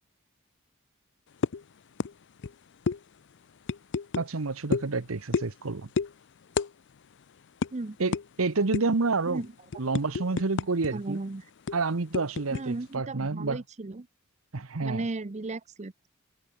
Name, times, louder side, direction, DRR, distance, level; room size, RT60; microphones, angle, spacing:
sound 1, 1.4-1.6 2.0-2.1 2.4-2.5 2.9-3.0 3.7-4.3 4.7-4.9 5.3-5.6 6.0-6.1 6.6-6.7 7.0-7.1 7.6-7.7 8.1-8.3 8.7-9.0 9.4-10.9 11.2-11.3 11.7-12.6, left 5 dB, 55° left, 0.5 m, -29 dB
voice 1, 4.2-5.9 8.0-9.4 9.8-11.2 11.7-13.6 14.5-15.0, right 3 dB, 70° right, 1.0 m, -29 dB
voice 2, 10.9-11.5 12.5-14.1 14.8-16.1, right 2 dB, 30° right, 0.7 m, -35 dB
head